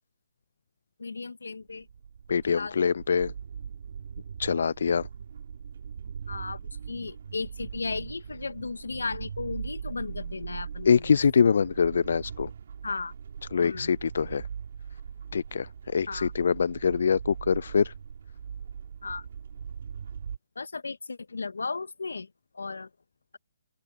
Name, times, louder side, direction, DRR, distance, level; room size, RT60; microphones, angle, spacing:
voice 1, 1.0-1.9 2.5-3.0 6.3-6.6 6.9-11.1 12.8-13.1 13.6-13.9 16.1-16.3 19.0-19.3 20.6-22.3 22.5-22.9, left 4 dB, 90° left, 1.8 m, -35 dB
sound 1, 1.7-20.4, right 7 dB, 60° right, 3.5 m, -40 dB
voice 2, 2.3-3.3 4.4-5.1 10.9-12.5 13.5-14.5 15.3-17.9, left 6 dB, 65° left, 0.4 m, -24 dB
open air
hypercardioid pair, 150°, 0 cm